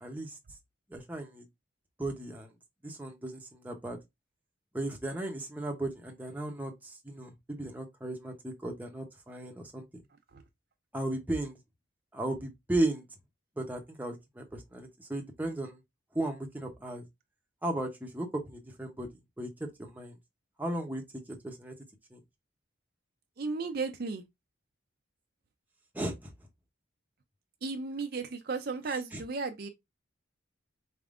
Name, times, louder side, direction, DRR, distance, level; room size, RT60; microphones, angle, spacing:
voice 1, 0.0-0.4 0.9-1.4 2.0-2.5 2.8-4.0 4.7-9.9 10.9-11.6 12.1-13.0 13.6-15.8 16.1-17.0 17.6-19.1 19.4-20.2 20.6-21.0 21.3-21.7 22.1-22.2 25.9-26.3 29.1-29.2, right 1 dB, 10° right, 0.7 m, -35 dB
voice 2, 23.4-24.2 27.6-29.7, right 4 dB, 50° right, 0.5 m, -34 dB
4.4 x 3.5 x 2.4 m
head